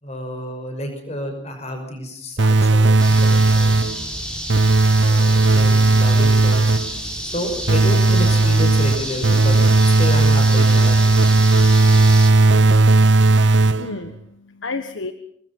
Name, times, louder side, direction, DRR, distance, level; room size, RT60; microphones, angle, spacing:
voice 1, 0.0-3.8 5.0-6.7 7.2-9.6 9.8-11.3, left 1 dB, 35° left, 5 dB, 6.0 m, -30 dB
sound 1, 2.4-4.0 4.5-7.0 7.7-14.1, right 2 dB, 65° right, 0.8 m, -15 dB
sound 2, 3.0-12.3, equal, 5° left, 3.7 m, -30 dB
voice 2, 13.1-15.1, left 3 dB, 75° left, 9 dB, 1.4 m, -33 dB
26.0 x 20.5 x 5.6 m, 0.68 s
head